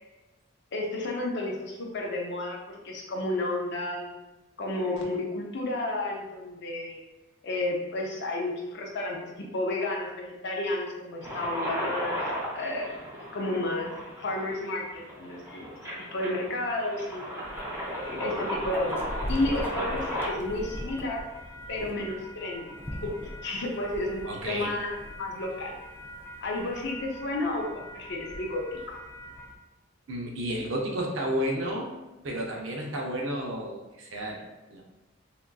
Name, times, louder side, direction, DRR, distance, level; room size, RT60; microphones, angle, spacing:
voice 1, 0.7-4.1 4.6-7.0 7.4-12.2 12.5-12.9 13.3-13.9 14.2-15.7 16.0-17.2 17.9-21.3 21.7-22.6 23.0-25.8 26.4-29.0, left 2 dB, 60° left, -1 dB, 0.6 m, -32 dB
sound 1, 11.2-20.3, equal, 15° right, 0.8 m, -35 dB
sound 2, 17.4-29.6, equal, 10° left, 0.3 m, -41 dB
voice 2, 24.3-24.7 30.1-31.9 32.2-34.9, right 1 dB, 70° right, -1 dB, 0.7 m, -32 dB
3.6 x 2.4 x 2.3 m, 1.1 s
head